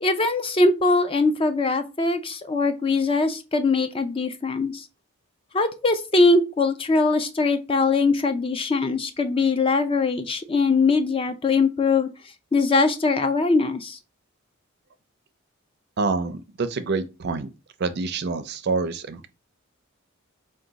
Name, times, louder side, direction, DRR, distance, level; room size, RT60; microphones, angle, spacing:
voice 1, 0.0-4.8 5.5-12.1 12.5-14.0, left 3 dB, 25° left, 0.4 m, -21 dB
voice 2, 16.0-17.5 17.8-19.3, right 4 dB, 50° right, 0.4 m, -27 dB
4.6 x 2.2 x 3.8 m
head